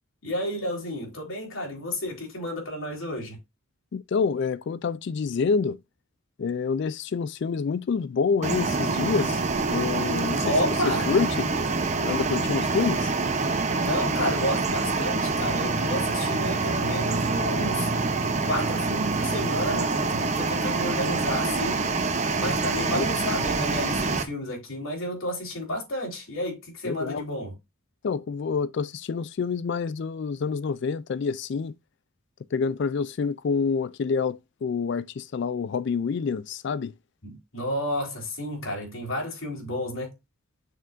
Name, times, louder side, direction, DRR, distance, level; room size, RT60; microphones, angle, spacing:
voice 1, 0.2-3.4 10.4-11.1 13.8-17.9 18.4-21.9 22.4-27.5 37.2-40.1, left 1 dB, 70° left, 3.5 m, -31 dB
voice 2, 3.9-5.8 6.4-10.5 10.9-11.5 12.0-13.1 22.9-23.1 26.8-27.2 28.0-31.7 32.5-36.9, left 5 dB, 55° left, 0.3 m, -27 dB
sound 1, 8.4-24.2, right 3 dB, 35° right, 0.8 m, -26 dB
6.8 x 6.3 x 2.5 m
head